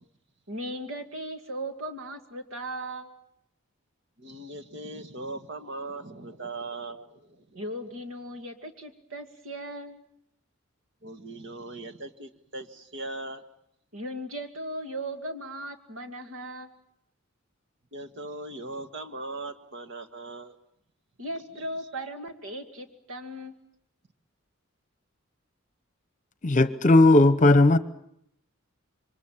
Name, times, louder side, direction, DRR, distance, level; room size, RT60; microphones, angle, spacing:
voice 1, 0.5-3.1 7.5-10.0 13.9-16.7 21.2-23.7, right 1 dB, 75° right, 2.4 m, -37 dB
voice 2, 4.2-7.4 11.0-13.4 17.9-20.5 21.5-21.6, right 2 dB, 55° right, 1.8 m, -39 dB
voice 3, 26.4-27.8, left 2 dB, 35° left, 0.9 m, -17 dB
27.0 x 24.0 x 7.5 m
head